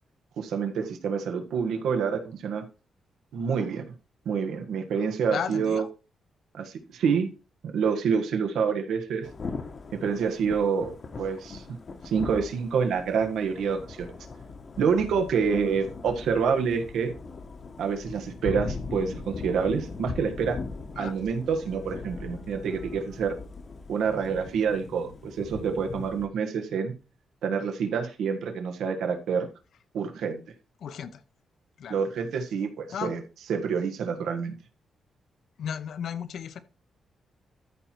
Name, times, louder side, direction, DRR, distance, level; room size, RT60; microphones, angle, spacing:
voice 1, 0.4-2.6 3.3-3.8 4.2-5.8 6.5-7.3 7.6-9.3 9.9-11.6 12.0-14.1 14.8-17.1 17.8-20.6 21.0-23.3 23.9-26.9 27.4-29.5 29.9-30.4 31.9-33.2 33.5-34.5, right 6 dB, 85° right, 1.5 m, -27 dB
voice 2, 5.3-5.9 20.9-21.1 30.8-31.2 31.8-32.0 32.9-33.1 35.6-36.6, left 8 dB, 65° left, 0.8 m, -34 dB
Thunder / Rain, 9.2-26.3, left 4 dB, 35° left, 1.1 m, -40 dB
13.5 x 4.6 x 4.5 m
wide cardioid pair, 150°, 0 cm